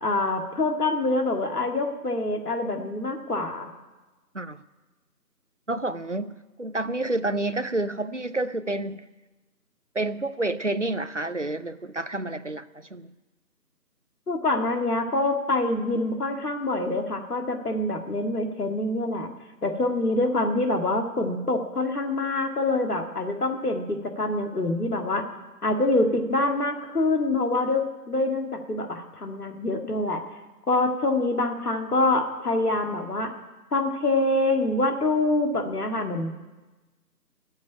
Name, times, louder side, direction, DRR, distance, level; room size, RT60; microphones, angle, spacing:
voice 1, 0.0-3.7 14.3-19.3 19.6-25.2 25.6-30.2 30.7-33.3 33.7-36.4, left 2 dB, 65° left, 4 dB, 2.0 m, -25 dB
voice 2, 5.7-9.1 9.9-13.1, right 2 dB, 50° right, 13 dB, 0.5 m, -29 dB
14.5 x 7.3 x 9.9 m, 1.2 s
figure-of-eight pair, 170°, 50 cm